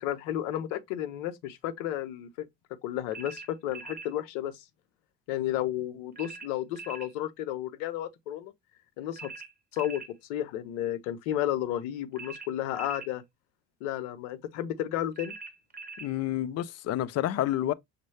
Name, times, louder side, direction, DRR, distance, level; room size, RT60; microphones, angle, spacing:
voice 1, 0.0-2.5 2.8-4.5 5.3-8.5 9.0-9.3 9.7-10.0 10.3-13.2 13.8-15.3, left 12 dB, 80° left, 0.7 m, -32 dB
sound 1, 3.1-4.1 6.2-7.1 9.2-10.1 12.2-13.1 15.2-16.1, right 4 dB, 25° right, 1.0 m, -43 dB
voice 2, 16.0-17.7, left 13 dB, 50° left, 0.5 m, -29 dB
6.2 x 2.2 x 3.2 m
supercardioid pair, 70°, 35 cm